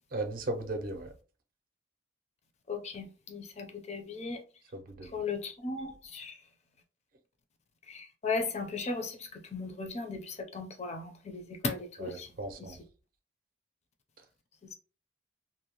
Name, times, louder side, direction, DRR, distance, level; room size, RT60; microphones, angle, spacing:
voice 1, 0.1-1.1 4.7-5.1 12.0-12.8, right 2 dB, 50° right, 0.5 m, -36 dB
voice 2, 2.7-4.4 5.1-6.4 7.9-12.3 12.6-12.7, left 4 dB, 35° left, 0.5 m, -37 dB
2.6 x 2.0 x 2.9 m
head